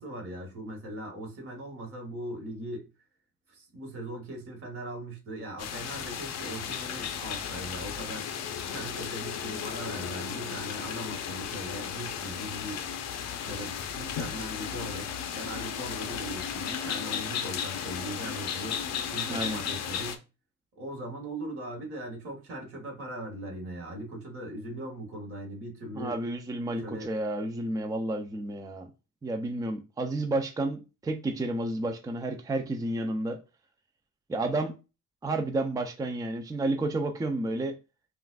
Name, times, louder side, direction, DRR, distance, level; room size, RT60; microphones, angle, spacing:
voice 1, 0.0-2.9 3.5-8.3 8.7-12.8 13.4-20.2 20.8-26.2 26.8-27.1, right 1 dB, 45° right, 1.8 m, -39 dB
sound 1, 5.6-20.2, left 8 dB, 55° left, 0.6 m, -35 dB
voice 2, 19.3-19.6 26.0-28.9 29.2-33.4 34.3-34.7 35.2-37.8, right 2 dB, 10° right, 0.5 m, -31 dB
5.6 x 2.5 x 2.3 m
cardioid pair, 120°, 31 cm